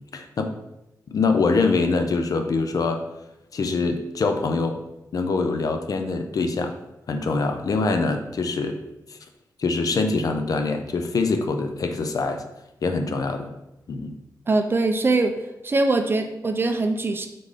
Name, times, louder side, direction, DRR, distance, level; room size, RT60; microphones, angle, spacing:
voice 1, 0.1-0.5 1.1-3.0 3.5-4.8 5.1-6.8 7.1-8.8 9.1-9.2 9.6-12.4 12.8-13.5 13.9-14.1, left 3 dB, 60° left, 6 dB, 0.4 m, -24 dB
voice 2, 14.5-15.4 15.6-17.3, right 3 dB, 30° right, 6 dB, 0.4 m, -22 dB
3.7 x 3.7 x 3.2 m, 0.91 s
wide cardioid pair, 120°, 7 cm